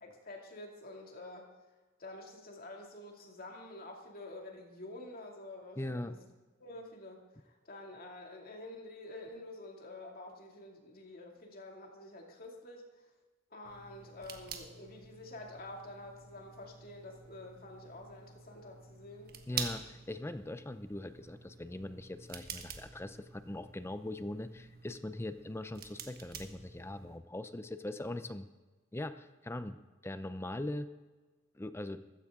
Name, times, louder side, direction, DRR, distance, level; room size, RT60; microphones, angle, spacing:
voice 1, 0.0-1.5 2.0-6.2 6.6-12.8 13.5-19.8, left 2 dB, 50° left, 1 dB, 2.5 m, -48 dB
voice 2, 5.8-6.2 19.5-28.5 28.9-29.8 30.0-30.9 31.5-32.0, left 1 dB, 15° left, 11 dB, 0.5 m, -41 dB
sound 1, 13.6-27.2, right 6 dB, 50° right, 1.3 m, -48 dB
14.5 x 14.5 x 3.7 m, 1.2 s
head